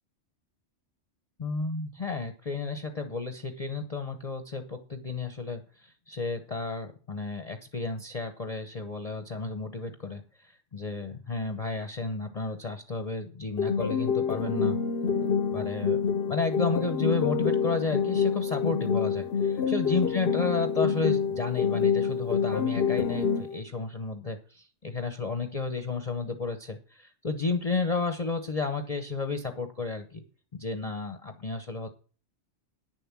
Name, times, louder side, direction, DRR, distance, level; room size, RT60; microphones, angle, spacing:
voice 1, 1.4-14.8 15.5-16.0 16.3-30.2 30.5-31.9, left 3 dB, 35° left, 7 dB, 1.0 m, -32 dB
sound 1, 13.6-23.6, left 6 dB, 60° left, 1.0 m, -27 dB
10.0 x 7.1 x 7.4 m, 0.38 s
omnidirectional pair, 1.2 m